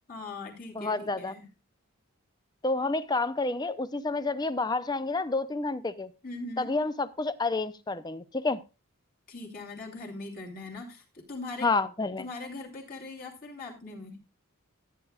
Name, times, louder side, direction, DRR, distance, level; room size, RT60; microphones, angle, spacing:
voice 1, 0.1-1.5 6.2-6.7 9.3-11.7 12.2-14.2, left 2 dB, 40° left, 2.8 m, -41 dB
voice 2, 0.8-1.3 2.6-6.1 6.6-8.6 11.6-12.2, left 3 dB, 20° left, 0.5 m, -29 dB
14.0 x 9.5 x 2.4 m
head